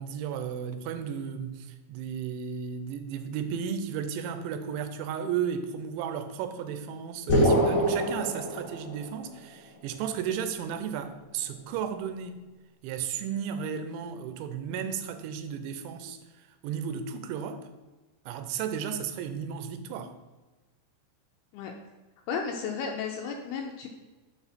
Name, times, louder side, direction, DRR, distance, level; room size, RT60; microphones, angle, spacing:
voice 1, 0.0-12.4 12.8-17.6 18.3-20.1, right 7 dB, 85° right, 8 dB, 3.0 m, -34 dB
sound 1, 7.3-9.2, equal, 30° left, 1.6 m, -24 dB
voice 2, 22.3-23.9, left 6 dB, 85° left, 2 dB, 2.3 m, -33 dB
6.8 x 4.9 x 4.1 m, 1.2 s
omnidirectional pair, 5.2 m